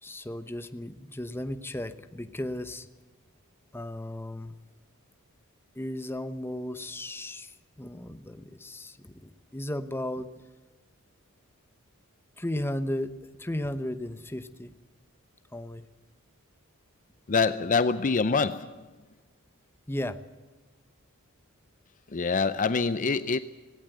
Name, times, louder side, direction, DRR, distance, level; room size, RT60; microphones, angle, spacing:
voice 1, 0.0-2.9 3.7-4.6 5.7-10.3 12.4-14.7 15.5-15.9 19.9-20.2, left 1 dB, 10° left, 11 dB, 0.9 m, -35 dB
voice 2, 17.3-18.9 22.1-23.4, left 4 dB, 35° left, 13 dB, 0.6 m, -25 dB
18.0 x 17.0 x 9.2 m, 1.2 s
head